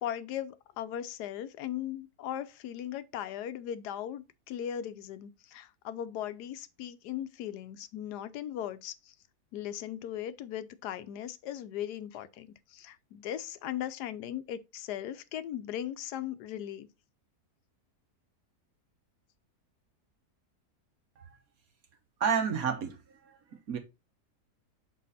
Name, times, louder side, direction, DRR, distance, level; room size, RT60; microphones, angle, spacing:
voice 1, 0.0-9.1 9.5-16.9, left 10 dB, 85° left, 1.2 m, -38 dB
voice 2, 22.2-23.4 23.7-23.8, right 6 dB, 65° right, 1.6 m, -30 dB
6.2 x 4.2 x 4.1 m
omnidirectional pair, 1.7 m